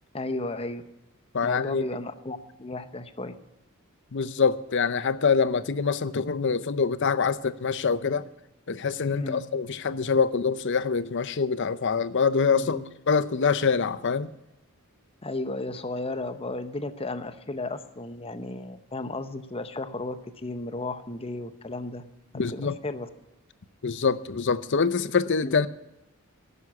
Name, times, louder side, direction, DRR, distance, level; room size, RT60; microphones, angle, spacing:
voice 1, 0.1-0.8 1.4-3.3 9.1-9.4 12.5-12.8 15.2-22.0 22.5-23.1 25.4-25.5, left 2 dB, 25° left, 0.8 m, -34 dB
voice 2, 1.3-1.8 4.1-8.2 8.7-12.8 13.1-14.3 22.3-22.8 23.8-25.7, left 5 dB, 55° left, 0.6 m, -25 dB
12.5 x 9.6 x 8.5 m
head